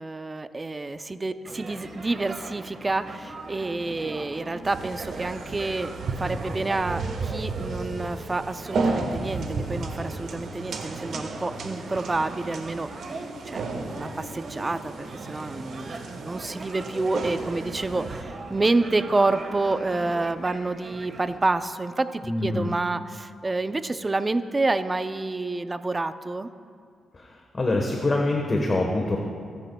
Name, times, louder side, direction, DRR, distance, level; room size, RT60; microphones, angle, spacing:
voice 1, 0.0-5.9 6.2-13.0 13.5-26.5, right 2 dB, 20° right, 11 dB, 0.5 m, -28 dB
sound 1, 1.4-21.4, right 3 dB, 50° right, 1.4 m, -40 dB
sound 2, 4.6-18.2, right 3 dB, 70° right, 1.4 m, -34 dB
voice 2, 22.2-22.7 27.1-27.3 27.5-29.2, left 2 dB, 30° left, 0 dB, 1.2 m, -24 dB
27.5 x 10.5 x 2.3 m, 2.2 s
cardioid pair, 105°, 0 cm